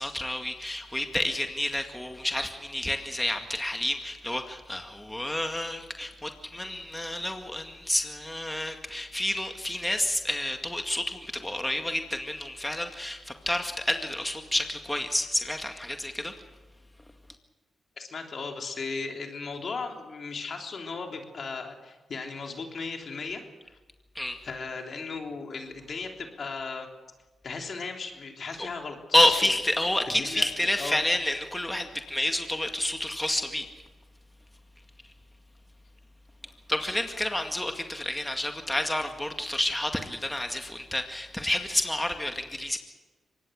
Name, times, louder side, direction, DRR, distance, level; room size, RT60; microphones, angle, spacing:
voice 1, 0.0-16.3 24.2-24.4 29.1-33.7 36.7-42.8, left 1 dB, 10° left, 5 dB, 2.0 m, -29 dB
voice 2, 18.0-23.4 24.4-26.9 27.4-29.0 29.2-29.5 30.1-30.5 30.8-31.0, left 4 dB, 60° left, 3 dB, 3.4 m, -36 dB
24.5 x 19.5 x 6.5 m, 1.2 s
supercardioid pair, 55°, 0 cm